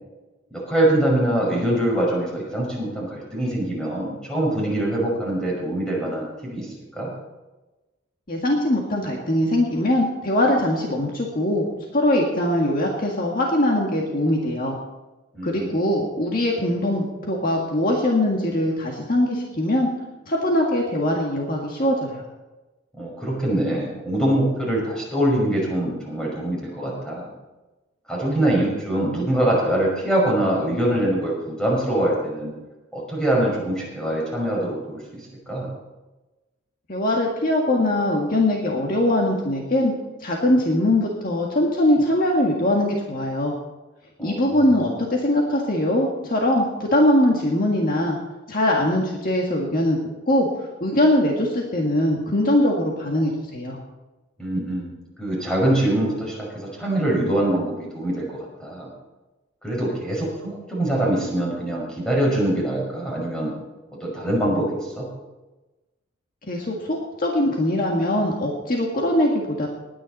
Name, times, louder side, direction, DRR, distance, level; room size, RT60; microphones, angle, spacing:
voice 1, 0.5-7.1 15.3-15.7 23.0-27.3 28.1-32.5 32.9-35.7 44.2-44.7 54.4-54.9 55.2-58.9 59.6-63.5 64.0-65.1, right 1 dB, 5° left, -4 dB, 5.8 m, -24 dB
voice 2, 8.3-11.7 11.9-14.7 15.4-19.9 20.3-22.2 36.9-39.9 40.2-43.5 44.2-48.2 48.5-50.0 50.3-53.8 66.5-69.7, left 1 dB, 45° left, -1 dB, 1.8 m, -21 dB
19.5 x 10.0 x 4.3 m, 1.1 s
head